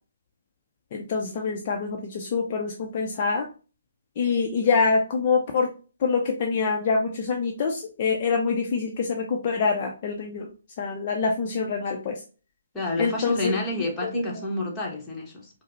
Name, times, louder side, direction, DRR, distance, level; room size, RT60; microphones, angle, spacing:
voice 1, 0.9-3.5 4.2-5.7 6.0-10.5 10.8-12.2 13.0-13.5 14.0-14.4, left 5 dB, 35° left, 0.5 m, -25 dB
voice 2, 12.7-15.5, left 1 dB, 15° left, 1.0 m, -29 dB
4.8 x 2.0 x 2.8 m
figure-of-eight pair, 135°, 0 cm